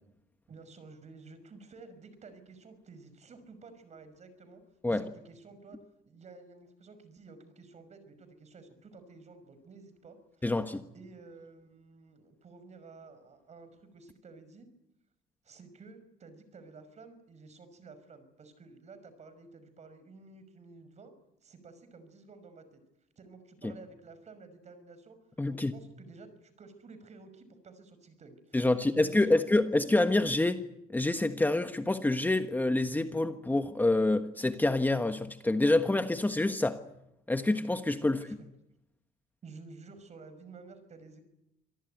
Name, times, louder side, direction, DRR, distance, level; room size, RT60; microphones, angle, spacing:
voice 1, 0.5-4.6 4.9-5.8 6.1-10.5 10.9-14.7 15.4-21.1 21.4-22.8 23.2-25.2 25.5-29.4 38.0-38.4 39.4-41.2, right 4 dB, 40° right, 11 dB, 5.8 m, -52 dB
voice 2, 10.4-10.8 25.4-25.7 28.5-30.6 30.9-36.8 37.3-38.3, left 2 dB, 10° left, 8 dB, 1.3 m, -27 dB
26.5 x 18.5 x 9.3 m, 0.85 s
cardioid pair, 110°, 17 cm